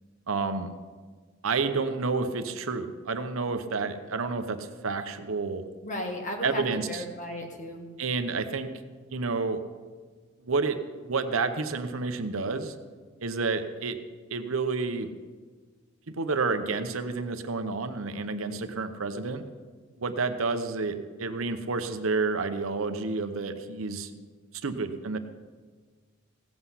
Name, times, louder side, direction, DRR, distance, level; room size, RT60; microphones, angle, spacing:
voice 1, 0.3-0.7 1.4-5.6 6.4-7.0 8.0-8.7 9.1-9.6 10.4-12.7 13.2-14.0 14.3-15.1 16.2-19.4 20.0-24.1 24.6-25.2, right 4 dB, 80° right, 8 dB, 0.8 m, -30 dB
voice 2, 5.8-7.9, left 1 dB, 35° left, 2 dB, 1.7 m, -35 dB
16.0 x 7.9 x 5.7 m, 1.5 s
head